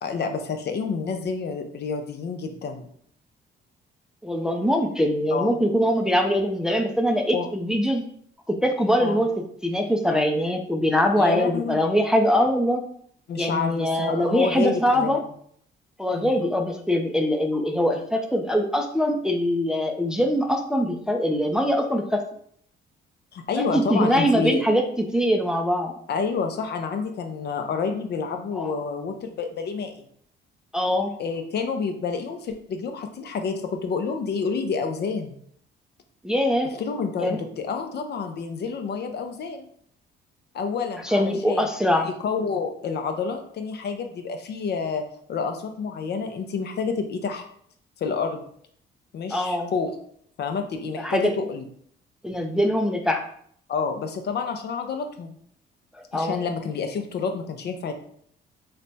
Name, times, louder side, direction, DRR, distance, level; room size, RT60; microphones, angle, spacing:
voice 1, 0.0-2.9 5.3-5.5 7.3-7.5 9.0-9.2 11.1-11.8 13.3-15.2 16.1-16.4 23.3-24.6 26.1-30.0 31.2-35.3 36.8-39.7 40.5-41.6 42.0-45.0 45.3-47.4 48.0-48.4 49.1-49.9 50.4-51.6 53.7-55.4 56.1-57.9, left 5 dB, 55° left, 6 dB, 0.5 m, -29 dB
voice 2, 4.2-8.0 8.5-12.8 13.4-15.2 16.0-22.2 23.6-25.9 28.5-28.7 30.7-31.2 36.2-36.8 37.2-37.4 41.0-42.1 49.3-49.7 51.0-51.3 52.2-53.2 55.9-56.5, equal, 5° right, 3 dB, 0.4 m, -23 dB
3.2 x 2.2 x 4.0 m, 0.63 s
cardioid pair, 90°, 20 cm